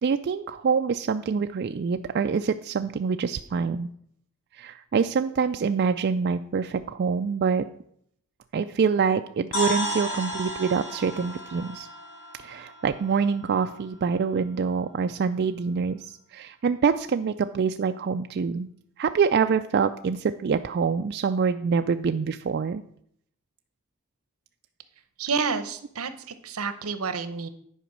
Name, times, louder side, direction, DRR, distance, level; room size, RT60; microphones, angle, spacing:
voice 1, 0.0-3.9 4.6-7.6 8.5-11.9 12.4-18.7 19.0-22.8, right 5 dB, 45° right, 8 dB, 0.3 m, -25 dB
sound 1, 9.5-13.5, equal, 60° left, 3.3 m, -33 dB
voice 2, 25.2-27.5, right 5 dB, 75° right, 11 dB, 0.8 m, -29 dB
10.0 x 5.1 x 6.1 m, 0.68 s
head